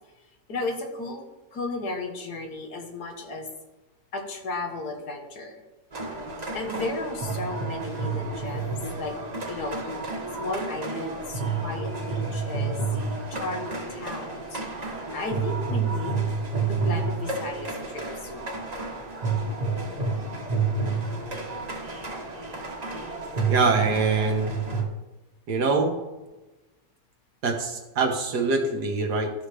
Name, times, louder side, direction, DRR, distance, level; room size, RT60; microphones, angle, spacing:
voice 1, 0.5-1.2 1.5-3.5 4.1-5.6 6.5-9.2 9.5-9.8 10.4-12.8 13.3-16.2 16.7-18.6, left 2 dB, 70° left, 3 dB, 1.8 m, -34 dB
sound 1, 5.9-24.8, right 4 dB, 25° right, 1.1 m, -30 dB
voice 2, 23.5-24.5 25.5-26.0 27.4-29.3, right 3 dB, 80° right, 3 dB, 1.8 m, -24 dB
13.5 x 6.5 x 3.4 m, 1.1 s
omnidirectional pair, 1.7 m